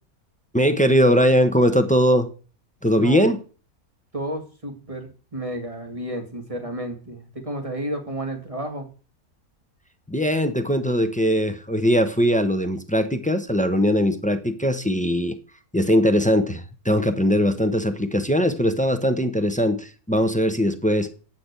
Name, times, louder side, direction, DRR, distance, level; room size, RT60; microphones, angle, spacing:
voice 1, 0.5-2.3 2.8-3.4 10.1-15.4 15.7-21.1, equal, 5° left, 9 dB, 0.7 m, -20 dB
voice 2, 2.9-3.3 4.1-8.9, right 1 dB, 20° right, 4 dB, 2.3 m, -31 dB
8.8 x 6.0 x 8.2 m, 0.37 s
omnidirectional pair, 1.6 m